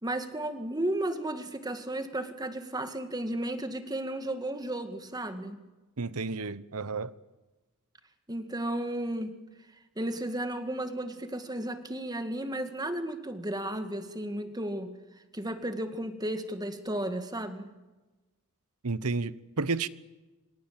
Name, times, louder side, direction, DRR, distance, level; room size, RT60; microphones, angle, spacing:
voice 1, 0.0-5.6 8.3-9.4 10.0-15.0 15.3-17.7, right 1 dB, 20° right, 2.1 m, -34 dB
voice 2, 6.0-7.1 18.8-19.9, right 4 dB, 85° right, 1.1 m, -31 dB
27.0 x 25.5 x 7.6 m
head